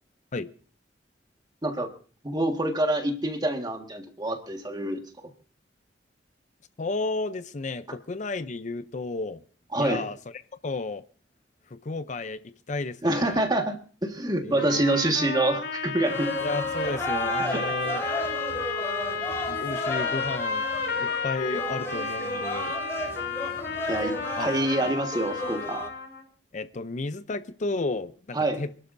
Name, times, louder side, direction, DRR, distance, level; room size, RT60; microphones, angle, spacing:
voice 1, 2.2-5.0 9.7-10.1 13.0-16.3 17.5-17.6 23.9-24.1 24.4-25.9 28.3-28.6, right 1 dB, 25° right, 1.6 m, -26 dB
voice 2, 6.8-9.4 9.8-11.0 11.7-13.4 14.4-14.8 16.4-18.0 19.5-20.7 21.0-22.7 24.4-24.5 24.8-24.9 26.5-28.7, left 3 dB, 45° left, 0.6 m, -33 dB
sound 1, 14.6-26.2, left 4 dB, 70° left, 3.7 m, -32 dB
sound 2, 16.0-25.9, equal, 15° left, 2.8 m, -34 dB
27.0 x 12.0 x 2.6 m
head